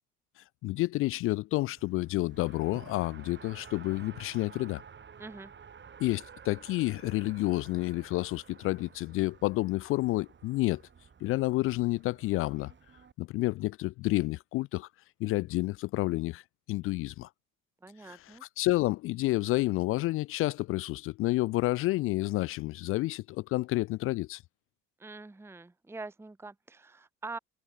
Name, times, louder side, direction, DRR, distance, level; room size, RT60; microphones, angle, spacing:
voice 1, 0.6-4.8 6.0-10.8 11.2-12.7 13.2-14.9 15.2-16.4 16.7-17.3 18.0-24.4, left 19 dB, 40° left, 0.4 m, -30 dB
Race car auto racing, 1.8-13.1, right 6 dB, 30° right, 3.2 m, -52 dB
voice 2, 5.2-5.5 17.8-18.4 25.0-27.4, right 3 dB, 5° right, 1.0 m, -44 dB
figure-of-eight pair, 55°, 37 cm